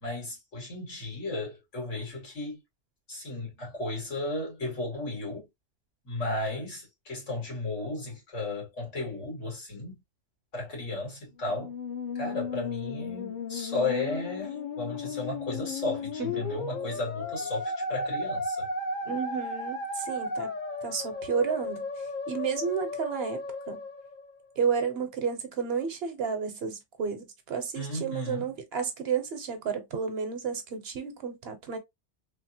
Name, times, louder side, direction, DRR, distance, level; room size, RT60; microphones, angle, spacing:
voice 1, 0.0-2.6 3.1-5.5 6.0-9.9 10.5-11.7 12.2-18.7 27.7-28.5, left 2 dB, 90° left, 2.0 m, -34 dB
Musical instrument, 11.4-24.8, left 3 dB, 50° left, 0.7 m, -35 dB
voice 2, 19.1-20.5 20.8-21.9 22.3-23.8 24.6-31.8, right 6 dB, 65° right, 0.9 m, -31 dB
3.4 x 2.0 x 2.7 m
omnidirectional pair, 1.2 m